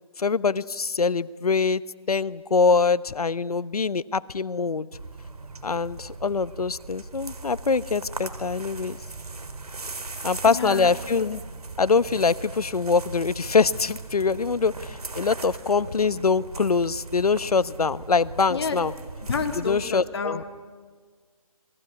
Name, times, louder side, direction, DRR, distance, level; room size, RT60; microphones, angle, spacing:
voice 1, 0.2-1.8 2.1-4.9 5.6-9.0 10.2-11.4 11.8-18.9 19.7-20.4, left 4 dB, 80° left, 17 dB, 1.0 m, -24 dB
sound 1, 4.9-19.9, right 3 dB, 80° right, 3.5 m, -39 dB
voice 2, 10.1-10.9 18.5-18.8 19.3-20.4, left 5 dB, 45° left, 5 dB, 2.8 m, -30 dB
27.5 x 20.0 x 9.9 m, 1.5 s
figure-of-eight pair, 165°, 19 cm